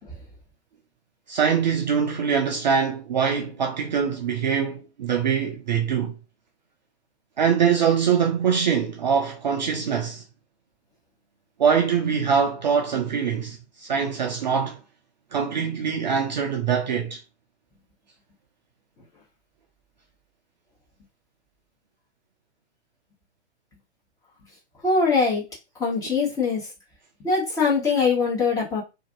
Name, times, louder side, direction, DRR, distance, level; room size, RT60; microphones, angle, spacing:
voice 1, 1.3-6.1 7.4-10.2 11.6-14.8 15.3-17.2, right 7 dB, 40° right, 0.4 m, -23 dB
voice 2, 24.8-25.4 25.8-26.7 27.2-28.8, left 4 dB, 10° left, 0.8 m, -22 dB
2.5 x 2.5 x 2.6 m
figure-of-eight pair, 115°, 36 cm